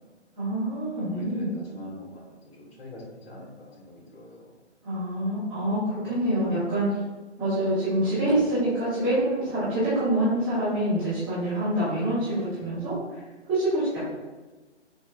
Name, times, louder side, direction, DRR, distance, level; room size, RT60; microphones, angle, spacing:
voice 1, 0.4-1.5 4.8-7.0 7.4-13.2 13.5-14.0, right 1 dB, 5° right, -13 dB, 0.7 m, -26 dB
voice 2, 0.9-4.6, left 1 dB, 60° left, -4 dB, 1.4 m, -44 dB
5.5 x 2.3 x 2.3 m, 1.2 s
hypercardioid pair, 160°, 36 cm